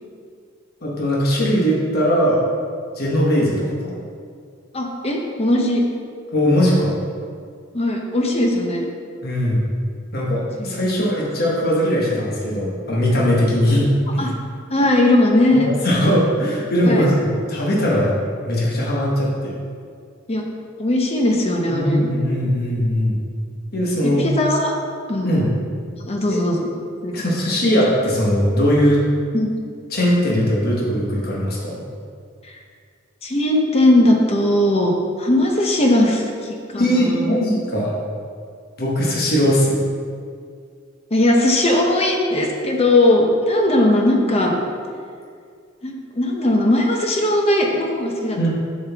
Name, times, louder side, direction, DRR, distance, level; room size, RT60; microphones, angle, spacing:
voice 1, 0.8-2.4 3.0-4.0 6.3-6.9 9.2-9.6 10.1-14.3 15.5-18.2 18.4-19.5 21.7-23.2 23.7-24.3 25.2-25.5 26.3-26.4 27.1-29.1 29.9-31.8 36.8-37.9 38.8-39.8 48.4-48.5, equal, 50° left, -4 dB, 1.2 m, -19 dB
voice 2, 4.7-5.8 7.7-8.8 10.6-10.9 14.2-14.3 14.7-15.7 16.8-17.1 20.3-20.4 20.8-22.1 24.0-24.7 25.1-25.5 26.0-26.7 27.0-27.3 29.3-29.5 33.2-34.9 35.2-37.4 41.1-44.5 45.8-48.5, left 1 dB, 30° left, 1 dB, 0.8 m, -18 dB
7.1 x 6.3 x 3.5 m, 2.2 s
head